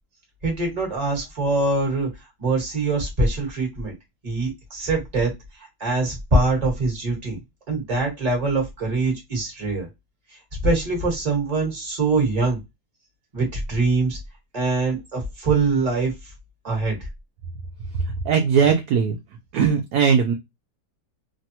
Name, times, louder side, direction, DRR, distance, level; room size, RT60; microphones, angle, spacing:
voice 1, 0.4-2.1 2.4-3.9 4.2-5.3 5.6-7.4 7.7-9.9 10.6-12.6 13.3-14.2 14.5-16.1 16.6-17.0, right 3 dB, 25° right, 0 dB, 1.2 m, -23 dB
voice 2, 18.3-19.2 19.5-20.3, right 6 dB, 75° right, 5 dB, 0.9 m, -19 dB
3.2 x 2.2 x 2.8 m, 0.20 s
omnidirectional pair, 2.2 m